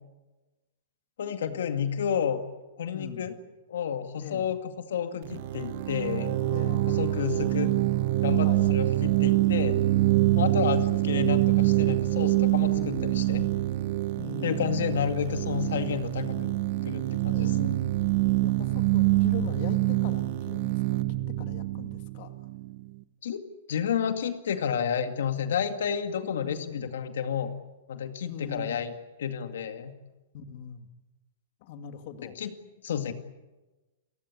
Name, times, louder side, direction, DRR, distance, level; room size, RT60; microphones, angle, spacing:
voice 1, 1.2-2.5 2.8-3.3 3.7-6.4 6.9-7.7 8.2-9.8 10.3-13.5 14.4-16.6 16.8-17.8 23.2-23.4 23.7-27.5 27.9-28.9 29.2-29.9 32.4-32.5 32.8-33.1, left 8 dB, 75° left, 8 dB, 2.2 m, -30 dB
voice 2, 2.9-3.3 4.2-4.4 6.5-7.0 8.4-8.7 10.5-10.7 12.7-13.2 14.2-14.9 17.3-17.9 18.4-21.0 21.3-22.3 26.4-26.9 28.3-28.8 30.3-30.9 31.6-32.4, left 8 dB, 45° left, 8 dB, 2.3 m, -41 dB
sound 1, 5.2-22.8, right 17 dB, 50° right, 1.1 m, -25 dB
30.0 x 15.5 x 9.8 m, 1.1 s
hypercardioid pair, 155°, 0 cm